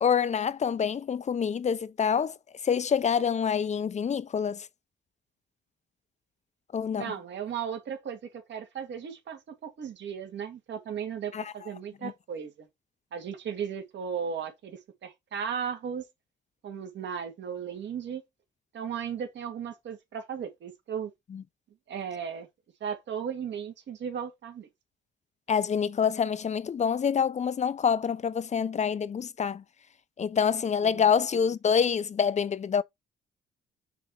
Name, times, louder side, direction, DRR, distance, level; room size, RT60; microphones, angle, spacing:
voice 1, 0.0-2.3 2.6-4.7 6.7-7.1 11.3-11.5 12.0-12.1 21.3-21.4 25.5-29.6 30.2-32.8, left 7 dB, 35° left, 0.5 m, -26 dB
voice 2, 7.0-12.5 13.1-16.0 16.6-18.2 18.7-21.1 21.9-22.5 22.8-24.7 30.8-31.1, right 7 dB, 65° right, 2.0 m, -36 dB
6.6 x 3.0 x 5.7 m
cardioid pair, 90°, 20 cm